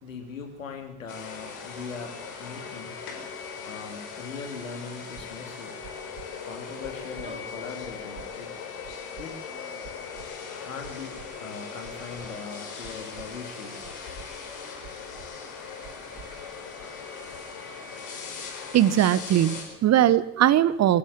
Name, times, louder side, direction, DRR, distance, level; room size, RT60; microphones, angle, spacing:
voice 1, 0.0-3.0 3.6-5.8 6.4-8.5 9.2-9.4 10.6-13.8 17.7-18.0, left 5 dB, 80° left, 4 dB, 3.2 m, -40 dB
sound 1, 1.1-19.6, left 5 dB, 60° left, 5.1 m, -39 dB
sound 2, 5.1-5.3 5.8-6.3 6.8-7.3 7.8-8.3 8.8-9.3 9.8-10.3 10.8-11.3 11.8-12.3 12.8-13.3 13.8-14.3 14.8-15.3 15.8-16.3, right 10 dB, 55° right, 2.2 m, -47 dB
sound 3, 7.2-7.8 8.2-8.8 9.5-10.4 11.1-12.1 13.5-14.9, right 1 dB, 15° right, 5.0 m, -51 dB
voice 2, 18.7-21.0, right 12 dB, 40° right, 17 dB, 1.1 m, -20 dB
22.0 x 15.0 x 8.9 m, 0.82 s
figure-of-eight pair, 55°, 39 cm